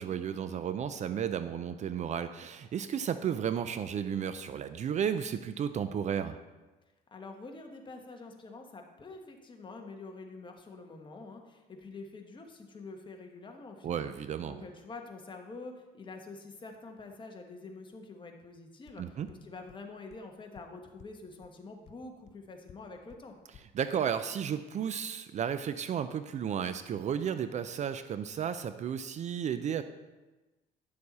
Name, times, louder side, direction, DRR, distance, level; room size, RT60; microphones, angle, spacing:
voice 1, 0.0-6.4 13.8-14.7 19.0-19.3 23.7-29.8, right 8 dB, 45° right, 11 dB, 0.5 m, -33 dB
voice 2, 7.1-14.1 14.5-23.4, left 3 dB, 30° left, 3 dB, 1.3 m, -47 dB
sound 1, 18.9-19.0 19.3-19.4 19.7-19.8 20.1-20.2 20.5-20.6 21.0-21.1 21.4-21.5 21.9-22.0 22.3-22.4 22.7-22.8 23.1-23.2 23.5-23.6, left 9 dB, 45° left, 0.6 m, -53 dB
10.5 x 6.7 x 4.1 m, 1.1 s
cardioid pair, 110°, 17 cm